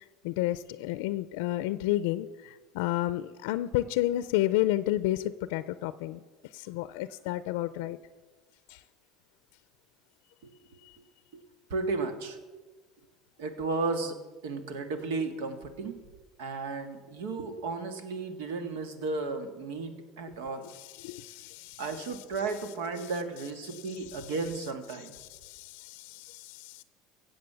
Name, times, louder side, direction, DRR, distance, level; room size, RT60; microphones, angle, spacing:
voice 1, 0.2-6.2 6.5-8.0 8.7-8.8 20.6-21.9 23.7-23.8 24.1-24.3 25.2-26.8, left 15 dB, 85° left, 15 dB, 0.5 m, -31 dB
voice 2, 11.7-12.4 13.4-14.2 14.4-16.0 16.4-20.7 21.8-25.1, right 3 dB, 90° right, 8 dB, 1.8 m, -34 dB
16.5 x 7.7 x 6.9 m, 1.3 s
supercardioid pair, 120°, 0 cm